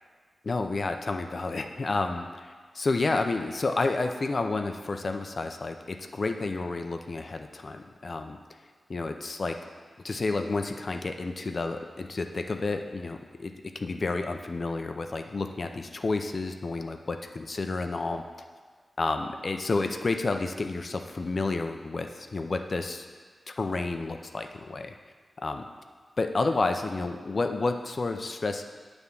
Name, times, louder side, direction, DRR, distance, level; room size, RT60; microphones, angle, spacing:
voice 1, 0.4-8.4 8.9-9.6 10.0-18.2 19.0-23.1 23.5-24.9 25.4-25.7 26.2-28.6, left 3 dB, 45° left, 6 dB, 0.5 m, -30 dB
9.3 x 3.5 x 6.8 m, 1.5 s
wide cardioid pair, 120°, 0 cm